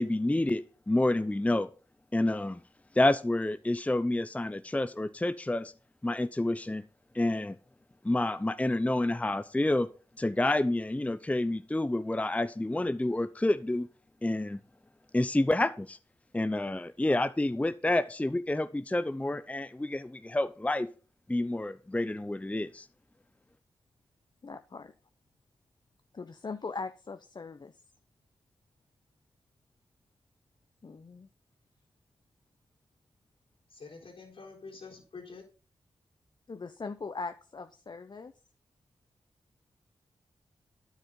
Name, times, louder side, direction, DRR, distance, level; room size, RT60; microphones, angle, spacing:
voice 1, 0.0-1.7 2.1-2.6 2.9-5.7 6.0-6.8 7.1-7.6 8.0-9.9 10.2-13.9 14.2-14.6 15.1-16.0 16.3-20.9 21.3-22.9, left 1 dB, 15° left, 0.6 m, -28 dB
voice 2, 24.4-24.9 26.1-27.7 30.8-31.3 36.5-38.3, left 4 dB, 50° left, 0.7 m, -40 dB
voice 3, 33.7-35.5, left 4 dB, 70° left, 3.9 m, -47 dB
9.7 x 8.1 x 3.9 m
cardioid pair, 45°, 10 cm